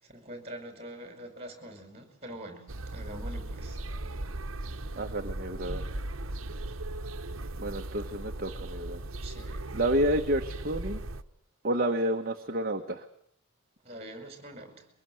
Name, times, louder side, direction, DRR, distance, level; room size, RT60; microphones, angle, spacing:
voice 1, 0.0-3.8 9.2-9.7 13.8-14.9, right 1 dB, 30° right, 6 dB, 5.4 m, -44 dB
sound 1, 2.7-11.2, right 2 dB, 80° right, 1.2 m, -37 dB
voice 2, 5.0-5.9 7.6-9.0 9.7-11.0 11.6-13.0, right 1 dB, 45° right, 3 dB, 1.4 m, -30 dB
24.0 x 22.5 x 7.9 m, 0.67 s
head